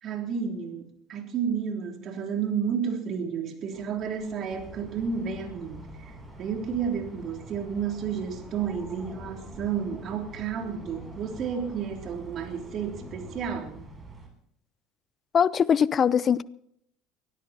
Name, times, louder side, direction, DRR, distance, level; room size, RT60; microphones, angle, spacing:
voice 1, 0.0-13.9, right 7 dB, 50° right, 3.5 m, -31 dB
sound 1, 3.7-13.6, left 1 dB, 5° left, 5.7 m, -49 dB
sound 2, 4.5-14.3, right 2 dB, 20° right, 7.8 m, -46 dB
voice 2, 15.3-16.4, left 7 dB, 40° left, 0.7 m, -21 dB
24.0 x 17.0 x 3.0 m
hypercardioid pair, 70°, 0 cm